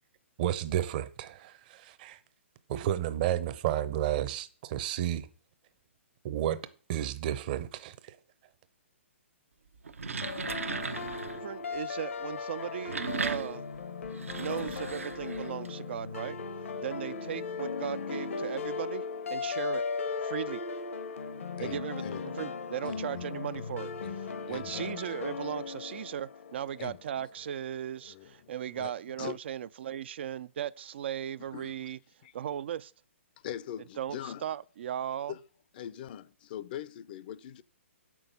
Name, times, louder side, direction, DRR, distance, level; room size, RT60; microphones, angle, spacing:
voice 1, 0.4-2.2 2.7-5.3 6.2-6.6 6.9-8.2, right 11 dB, 40° right, 0.7 m, -31 dB
sound 1, 9.7-11.4 12.6-15.7, right 4 dB, 90° right, 1.0 m, -37 dB
sound 2, 10.2-27.1, left 5 dB, 75° left, 1.0 m, -37 dB
voice 2, 11.3-13.6 14.4-16.4 16.8-19.0 19.3-19.8 20.2-20.6 21.6-23.9 24.2-32.0 32.3-32.9 34.0-35.3, right 10 dB, 55° right, 0.3 m, -37 dB
voice 3, 21.6-22.2 22.9-23.2 24.0-24.2 24.5-25.0 26.8-27.3 28.0-28.9 29.2-29.4 31.5-31.7 32.2-32.3 33.4-34.5 35.3-35.4 35.7-37.6, left 11 dB, 40° left, 0.5 m, -42 dB
7.1 x 6.1 x 6.7 m
hypercardioid pair, 140°, 7 cm